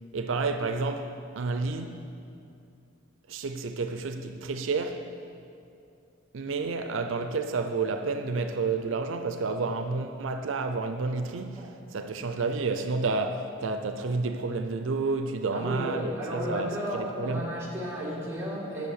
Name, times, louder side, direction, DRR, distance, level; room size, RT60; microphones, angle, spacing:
voice 1, 0.1-2.0 3.3-5.0 6.3-17.4, right 3 dB, 80° right, 0.4 m, -30 dB
voice 2, 15.5-18.9, equal, 15° right, 1.9 m, -33 dB
8.4 x 6.2 x 6.4 m
head